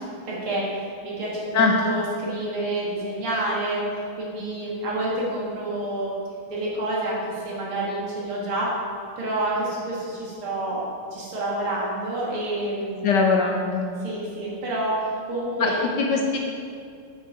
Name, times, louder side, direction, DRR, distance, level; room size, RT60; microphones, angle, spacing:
voice 1, 0.0-6.1 6.5-8.7 9.2-10.8 11.1-13.2 14.0-15.8, right 1 dB, 75° right, -6 dB, 2.8 m, -28 dB
voice 2, 13.0-13.8 15.6-15.7 16.0-16.4, left 4 dB, 65° left, 1 dB, 1.2 m, -21 dB
8.4 x 6.1 x 4.8 m, 2.3 s
omnidirectional pair, 2.4 m